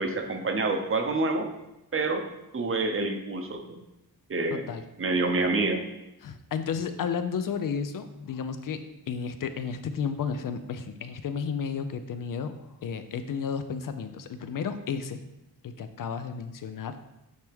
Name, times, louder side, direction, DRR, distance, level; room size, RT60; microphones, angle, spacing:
voice 1, 0.0-1.5 1.9-2.2 2.5-3.8 4.3-4.7 5.0-5.8, right 3 dB, 35° right, 5 dB, 0.7 m, -27 dB
voice 2, 4.5-4.8 6.2-12.5 12.8-15.2 15.6-17.0, left 6 dB, 55° left, 10 dB, 0.5 m, -32 dB
9.0 x 3.4 x 3.4 m, 0.90 s
wide cardioid pair, 150°, 39 cm